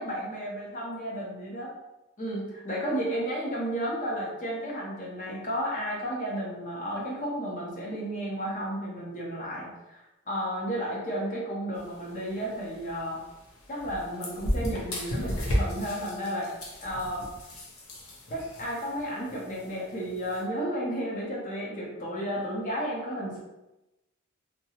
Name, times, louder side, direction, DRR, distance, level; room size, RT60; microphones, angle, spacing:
voice 1, 0.0-1.7 2.2-13.2 13.7-16.5 16.8-17.3 18.3-23.4, equal, 40° left, -3 dB, 0.7 m, -33 dB
sound 1, 11.7-20.4, equal, 90° left, 0.6 m, -35 dB
2.7 x 2.2 x 2.8 m, 0.99 s
head